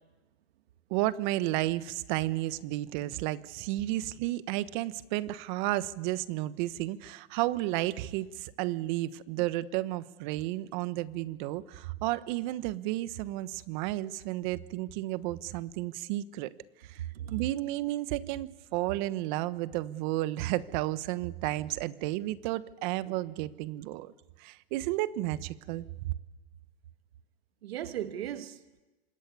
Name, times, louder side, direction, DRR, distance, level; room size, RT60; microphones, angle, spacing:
voice 1, 0.9-16.5 16.8-17.0 17.3-24.1 24.4-26.1, right 16 dB, 50° right, 1.2 m, -32 dB
voice 2, 17.0-17.4 27.6-28.8, right 11 dB, 80° right, 1.4 m, -37 dB
26.5 x 21.0 x 9.6 m
hypercardioid pair, 130°, 30 cm